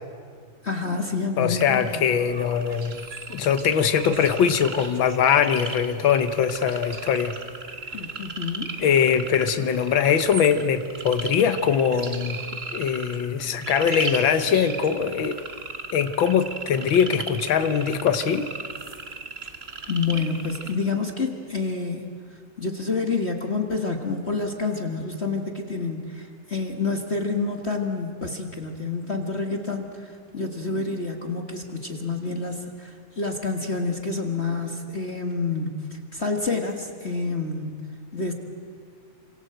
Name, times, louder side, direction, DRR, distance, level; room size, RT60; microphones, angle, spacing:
voice 1, 0.6-2.0 7.9-8.7 19.9-22.1 22.6-37.8 38.1-38.3, left 4 dB, 35° left, 3 dB, 1.2 m, -28 dB
voice 2, 1.4-7.3 8.8-12.4 12.7-15.4 15.9-18.5, left 7 dB, 75° left, 9 dB, 1.1 m, -22 dB
sound 1, 1.6-20.7, right 3 dB, 40° right, 0.9 m, -37 dB
28.0 x 26.0 x 7.9 m, 2.1 s
omnidirectional pair, 3.5 m